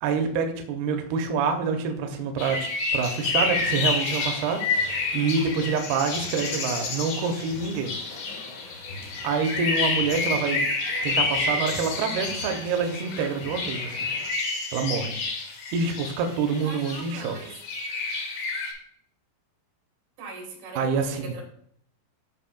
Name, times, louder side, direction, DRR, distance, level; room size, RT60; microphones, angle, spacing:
voice 1, 0.0-7.9 9.2-10.7 11.0-14.0 14.7-15.2 15.7-17.4 20.8-21.3, right 5 dB, 90° right, 4 dB, 2.2 m, -27 dB
sound 1, 2.4-18.7, left 3 dB, 65° left, 2.0 m, -29 dB
sound 2, 3.4-14.3, left 3 dB, 85° left, 3.5 m, -44 dB
voice 2, 16.6-17.6 20.2-21.4, right 4 dB, 65° right, -1 dB, 3.7 m, -39 dB
13.0 x 5.1 x 2.3 m, 0.66 s
omnidirectional pair, 5.4 m